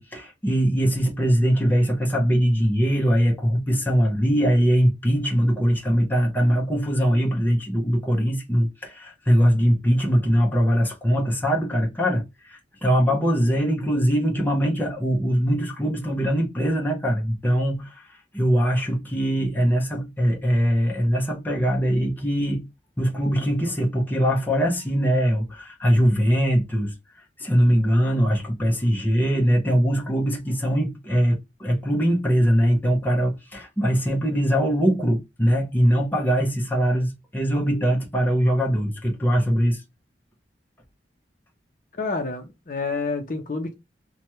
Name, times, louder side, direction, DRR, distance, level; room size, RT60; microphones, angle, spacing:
voice 1, 0.0-22.7 23.0-26.9 27.4-39.8, equal, 10° left, 0.7 m, -22 dB
voice 2, 41.9-43.7, left 3 dB, 50° left, 0.6 m, -28 dB
2.9 x 2.2 x 2.9 m
head